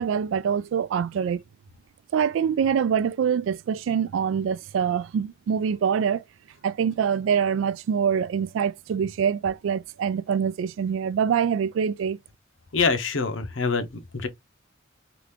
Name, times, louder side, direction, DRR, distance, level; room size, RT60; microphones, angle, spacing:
voice 1, 0.0-1.4 2.1-6.2 6.6-12.2, right 7 dB, 80° right, 0.3 m, -25 dB
voice 2, 12.7-14.3, left 4 dB, 80° left, 0.7 m, -25 dB
2.9 x 2.5 x 3.3 m
head